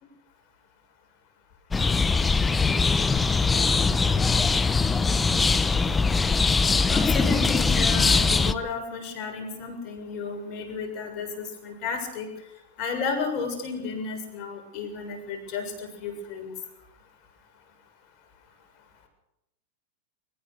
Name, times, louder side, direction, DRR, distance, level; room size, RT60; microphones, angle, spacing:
sound 1, 1.7-8.5, left 4 dB, 15° left, 1.0 m, -22 dB
voice 1, 6.9-12.3 12.8-16.5, left 5 dB, 45° left, 5 dB, 7.2 m, -33 dB
22.0 x 19.5 x 6.6 m, 0.84 s
hypercardioid pair, 115°, 0 cm